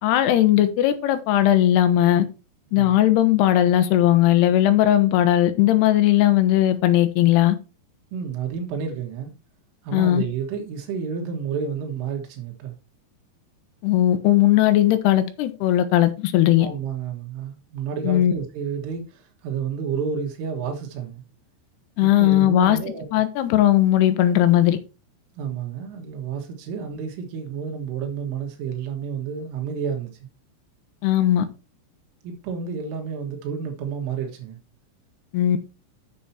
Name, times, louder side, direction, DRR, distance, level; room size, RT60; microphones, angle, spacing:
voice 1, 0.0-2.3 2.7-7.6 9.9-10.2 13.8-16.7 18.0-18.3 22.0-22.8 23.1-24.8 31.0-31.5 35.3-35.6, left 13 dB, 75° left, 2.7 m, -18 dB
voice 2, 8.1-9.3 9.8-12.7 16.6-21.2 22.0-23.1 25.4-30.1 32.2-34.6, right 6 dB, 90° right, 4.1 m, -30 dB
8.5 x 7.0 x 4.2 m
omnidirectional pair, 5.5 m